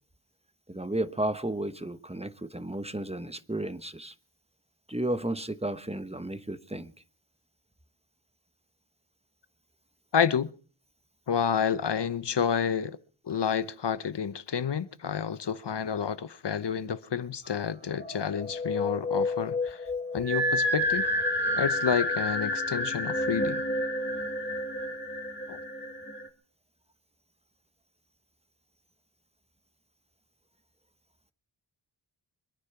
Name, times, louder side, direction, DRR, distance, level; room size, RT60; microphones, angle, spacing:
voice 1, 0.7-4.1 4.9-6.9, right 1 dB, 15° right, 1.1 m, -33 dB
voice 2, 10.1-10.5 11.3-13.0 13.3-19.8 20.1-21.1 21.6-23.6 25.5-25.6, left 7 dB, 60° left, 0.9 m, -29 dB
sound 1, 18.0-26.3, left 1 dB, 20° left, 2.4 m, -30 dB
24.5 x 9.8 x 5.8 m
cardioid pair, 60°, 47 cm